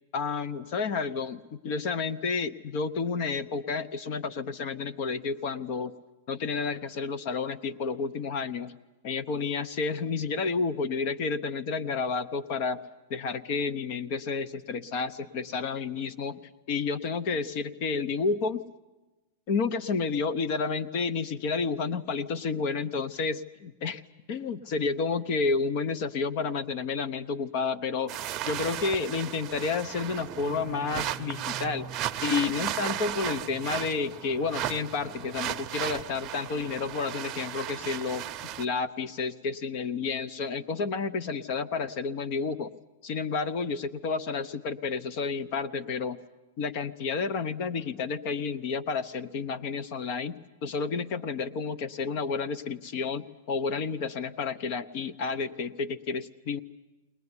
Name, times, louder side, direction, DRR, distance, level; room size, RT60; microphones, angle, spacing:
voice 1, 0.1-5.9 6.3-8.8 9.0-12.8 13.1-16.4 16.7-18.6 19.5-24.0 24.3-31.9 32.2-42.7 43.0-46.2 46.6-56.6, left 4 dB, 45° left, 14 dB, 0.9 m, -30 dB
sound 1, 28.1-38.6, right 11 dB, 30° right, 0.8 m, -35 dB
21.0 x 20.5 x 9.8 m, 1.1 s
supercardioid pair, 150°, 0 cm